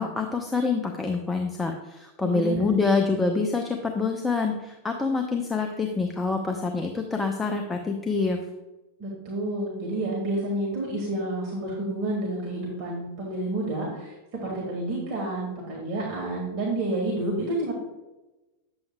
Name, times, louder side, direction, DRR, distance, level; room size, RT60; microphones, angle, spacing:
voice 1, 0.0-8.4, left 4 dB, 10° left, 3 dB, 0.6 m, -26 dB
voice 2, 2.2-2.9 9.0-17.7, right 1 dB, 40° right, -4 dB, 1.8 m, -30 dB
9.0 x 7.1 x 2.2 m, 1.0 s
figure-of-eight pair, 90°, 0 cm